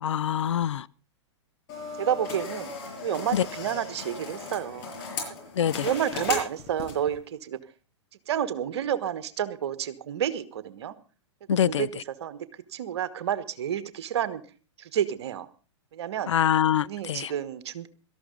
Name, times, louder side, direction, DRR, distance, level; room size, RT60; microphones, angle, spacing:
voice 1, 0.0-0.9 3.3-3.4 5.6-5.9 11.5-11.9 16.3-17.3, left 9 dB, 70° left, 0.6 m, -24 dB
sound 1, 1.7-7.1, left 4 dB, 45° left, 6.9 m, -36 dB
voice 2, 2.0-2.7 3.0-4.9 5.8-7.6 8.3-10.9 11.5-11.9 12.2-14.4 14.8-15.5 15.9-16.3 16.8-17.9, right 9 dB, 60° right, 1.4 m, -30 dB
18.0 x 13.5 x 3.9 m
figure-of-eight pair, 110°, 16 cm